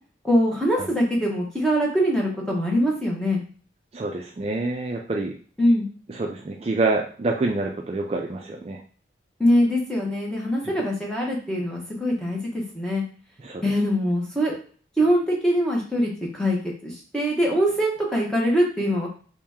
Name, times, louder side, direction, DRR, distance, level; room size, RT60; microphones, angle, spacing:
voice 1, 0.2-3.4 5.6-5.9 9.4-13.0 13.6-14.5 15.0-16.6 16.8-19.1, equal, 5° left, -3 dB, 1.0 m, -23 dB
voice 2, 3.9-5.3 6.1-8.8 13.4-13.6, right 2 dB, 35° right, 1 dB, 0.4 m, -27 dB
3.1 x 2.9 x 3.6 m, 0.43 s
head